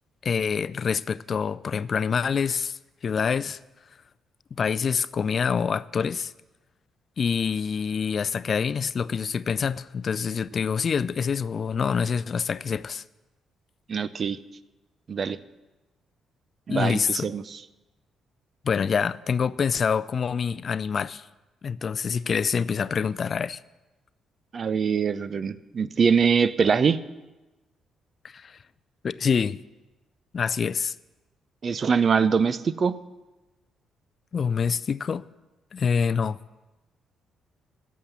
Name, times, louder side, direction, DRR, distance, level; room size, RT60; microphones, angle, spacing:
voice 1, 0.2-2.8 3.0-3.6 4.6-6.3 7.2-13.0 16.7-17.3 18.6-21.2 21.6-23.6 28.3-28.6 29.0-29.6 30.3-30.9 34.3-35.2 35.7-36.4, left 6 dB, 45° left, 0.3 m, -26 dB
voice 2, 13.9-14.4 15.1-15.4 16.7-17.6 24.5-27.0 31.6-33.0, right 6 dB, 45° right, 0.5 m, -23 dB
11.5 x 7.4 x 8.1 m
cardioid pair, 90°, 0 cm